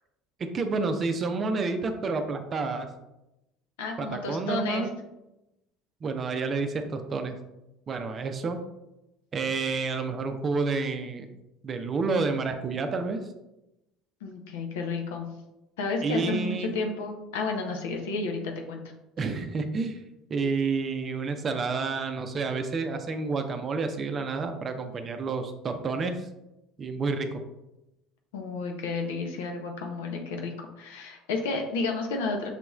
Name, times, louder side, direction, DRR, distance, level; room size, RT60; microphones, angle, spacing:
voice 1, 0.4-2.9 4.0-4.9 6.0-7.3 7.9-8.6 9.3-11.3 11.6-13.2 16.0-16.7 19.2-20.0 20.3-26.2 26.8-27.4, right 4 dB, 35° right, 7 dB, 0.5 m, -29 dB
voice 2, 3.8-4.9 14.2-15.3 15.8-18.4 18.7-18.8 28.3-32.5, left 3 dB, 70° left, 3 dB, 0.6 m, -31 dB
5.8 x 3.0 x 2.4 m, 0.93 s
figure-of-eight pair, 65°, 0 cm